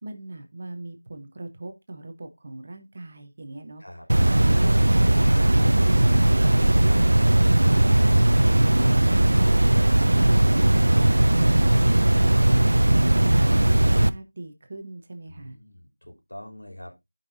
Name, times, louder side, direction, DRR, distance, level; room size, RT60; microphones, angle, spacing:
voice 1, 0.0-3.8 4.3-9.9 10.2-11.8 12.2-15.6, right 2 dB, 20° right, 6 dB, 0.8 m, -40 dB
sound 1, 4.1-14.1, right 1 dB, 50° right, 0.5 m, -18 dB
voice 2, 15.3-16.9, left 1 dB, 90° left, 2 dB, 3.3 m, -44 dB
12.5 x 5.5 x 2.6 m, 0.20 s
figure-of-eight pair, 175°, 0 cm